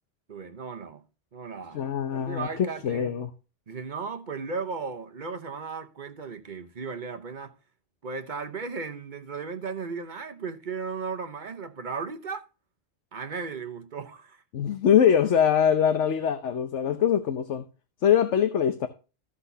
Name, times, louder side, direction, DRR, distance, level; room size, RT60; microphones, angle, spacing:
voice 1, 0.3-1.0 1.3-1.8 2.1-3.1 3.7-7.6 8.0-12.4 13.1-14.4, right 5 dB, 45° right, 1.0 m, -36 dB
voice 2, 1.7-2.5 2.8-3.3 14.5-17.6 18.0-18.9, left 8 dB, 90° left, 1.2 m, -23 dB
15.0 x 6.0 x 2.7 m
omnidirectional pair, 1.2 m